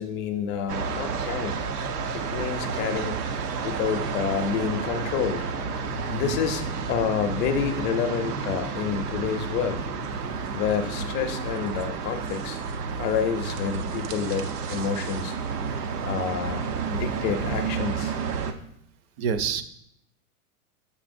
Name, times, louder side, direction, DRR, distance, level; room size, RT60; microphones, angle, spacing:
voice 1, 0.0-1.6 2.1-3.1 3.6-9.9 10.5-12.6 13.0-15.4 16.0-16.6 16.9-18.2, left 7 dB, 25° left, 7 dB, 0.4 m, -29 dB
sound 1, 0.7-18.5, right 5 dB, 85° right, 0.9 m, -31 dB
voice 2, 19.2-19.6, right 6 dB, 40° right, 11 dB, 0.6 m, -27 dB
7.0 x 7.0 x 2.6 m, 0.72 s
hypercardioid pair, 130°, 45 cm